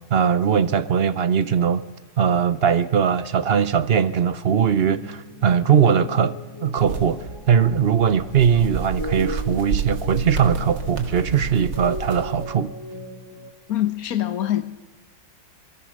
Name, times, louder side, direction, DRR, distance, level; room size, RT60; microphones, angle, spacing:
voice 1, 0.1-1.8 2.2-12.7, right 7 dB, 50° right, 0.7 m, -20 dB
sound 1, 4.8-13.5, left 2 dB, 15° left, 1.4 m, -38 dB
sound 2, 6.8-12.5, right 5 dB, 80° right, 2.8 m, -31 dB
voice 2, 13.7-14.6, left 12 dB, 55° left, 1.5 m, -24 dB
25.5 x 21.0 x 6.5 m
omnidirectional pair, 1.9 m